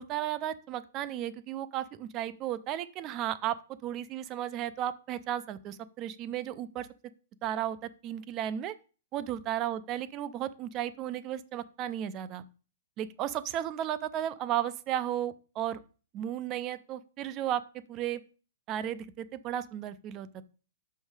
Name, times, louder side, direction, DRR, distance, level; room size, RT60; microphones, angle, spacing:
voice 1, 0.0-3.6 3.8-6.9 7.4-7.8 8.0-8.7 9.1-12.4 13.0-15.8 16.1-17.6 17.9-18.2 18.7-20.4, right 11 dB, 20° right, 15 dB, 0.3 m, -34 dB
6.3 x 5.5 x 4.7 m, 0.36 s
hypercardioid pair, 180°, 0 cm